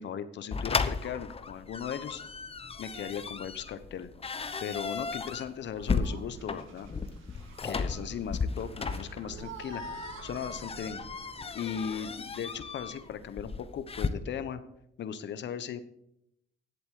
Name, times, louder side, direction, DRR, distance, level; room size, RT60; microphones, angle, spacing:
voice 1, 0.0-2.2 2.8-4.1 4.6-6.9 7.6-9.8 10.2-11.0 11.5-14.6 15.0-15.8, left 8 dB, 65° left, 12 dB, 1.0 m, -37 dB
sound 1, 0.5-14.1, left 4 dB, 30° left, 0.9 m, -35 dB
sound 2, 4.3-4.8 5.1-5.4 5.7-11.6, right 4 dB, 85° right, 2.0 m, -49 dB
11.0 x 8.0 x 6.5 m, 0.78 s
cardioid pair, 90°, 20 cm